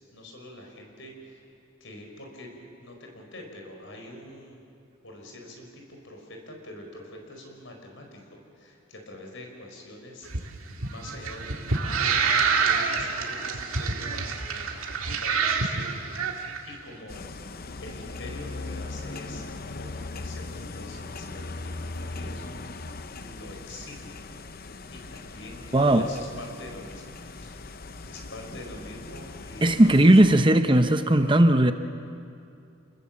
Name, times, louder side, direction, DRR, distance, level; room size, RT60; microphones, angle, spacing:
voice 1, 0.1-1.4 1.8-4.6 5.0-15.9 16.6-17.3 17.8-22.5 23.2-24.2 24.9-27.8 28.1-29.9, left 1 dB, 65° left, 2 dB, 4.9 m, -45 dB
sound 1, 10.2-16.6, right 5 dB, 90° right, 2.0 m, -27 dB
sound 2, 17.1-30.4, left 3 dB, 45° left, 0.7 m, -39 dB
voice 2, 25.7-26.1 29.6-31.7, right 1 dB, 25° right, 8 dB, 0.8 m, -17 dB
28.5 x 20.5 x 7.4 m, 2.5 s
head